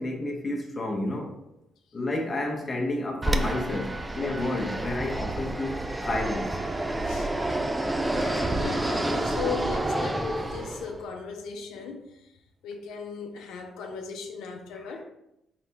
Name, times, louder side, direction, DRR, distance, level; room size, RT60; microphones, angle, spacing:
voice 1, 0.0-1.3 1.9-6.6 14.7-15.0, left 2 dB, 25° left, 0.8 m, -31 dB
Fixed-wing aircraft airplane, 3.2-11.0, right 1 dB, 15° right, 0.3 m, -29 dB
voice 2, 8.0-12.3 12.6-15.0, left 6 dB, 85° left, 0.5 m, -37 dB
4.0 x 3.3 x 2.8 m
cardioid pair, 90°, 0 cm